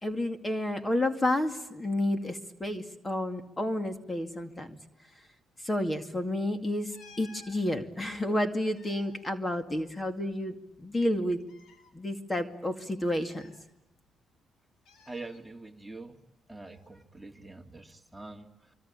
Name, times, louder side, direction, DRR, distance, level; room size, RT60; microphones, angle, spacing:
voice 1, 0.0-4.8 5.6-11.4 11.9-13.5, left 1 dB, 20° left, 8 dB, 2.4 m, -30 dB
sound 1, 6.9-7.6 8.5-10.2 10.5-10.6 11.4-11.9 13.1-14.1 14.9-15.4 16.7-16.9, left 5 dB, 75° left, 4.2 m, -56 dB
voice 2, 15.1-16.2 16.5-18.7, right 2 dB, 10° right, 4 dB, 2.4 m, -45 dB
26.0 x 24.5 x 9.0 m, 0.93 s
cardioid pair, 90°, 0 cm